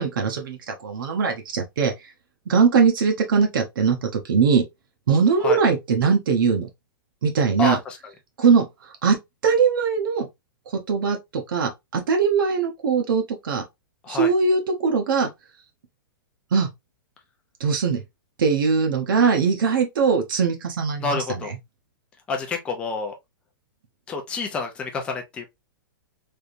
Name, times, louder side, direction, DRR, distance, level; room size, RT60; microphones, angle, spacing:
voice 1, 0.0-1.9 2.5-4.6 5.1-6.7 7.2-7.8 8.4-8.6 9.0-9.2 9.4-10.3 10.9-13.6 14.1-15.3 16.5-16.7 17.6-18.0 18.4-21.2, right 5 dB, 70° right, 0.9 m, -21 dB
voice 2, 7.6-8.0 14.0-14.3 21.0-21.5 22.3-23.1 24.1-25.4, left 4 dB, 10° left, 0.5 m, -28 dB
3.5 x 2.7 x 2.5 m
supercardioid pair, 175°, 12 cm